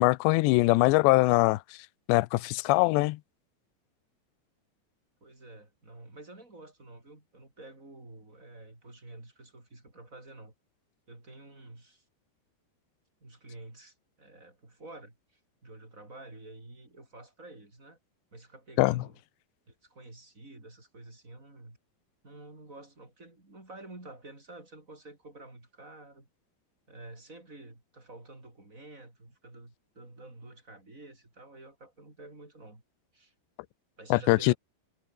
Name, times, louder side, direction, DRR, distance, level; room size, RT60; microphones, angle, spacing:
voice 1, 0.0-1.6 2.1-3.2 18.8-19.0 34.1-34.5, left 22 dB, 85° left, 2.9 m, -22 dB
voice 2, 5.2-10.5 11.1-12.0 13.2-18.0 18.3-19.2 19.7-21.8 22.2-26.3 26.9-32.8 33.1-33.3 34.0-34.6, right 2 dB, 15° right, 6.2 m, -49 dB
omnidirectional pair, 5.0 m